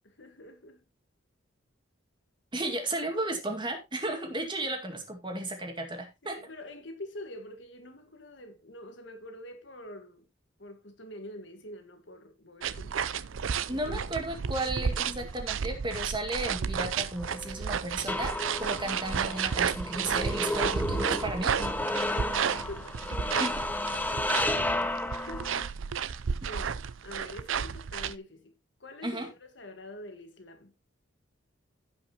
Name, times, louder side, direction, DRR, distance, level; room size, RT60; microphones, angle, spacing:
voice 1, 0.0-0.8 4.6-4.7 6.2-10.3 10.6-13.0 13.7-14.0 18.6-19.1 22.1-23.1 24.3-30.7, left 1 dB, 65° left, 1.7 m, -46 dB
voice 2, 2.5-6.4 13.7-21.5 23.4-23.6 29.0-29.3, right 1 dB, 25° right, 2.1 m, -34 dB
sound 1, 12.6-28.2, right 7 dB, 90° right, 0.5 m, -32 dB
sound 2, 17.2-25.7, left 1 dB, 10° left, 0.7 m, -33 dB
16.5 x 5.8 x 3.0 m
head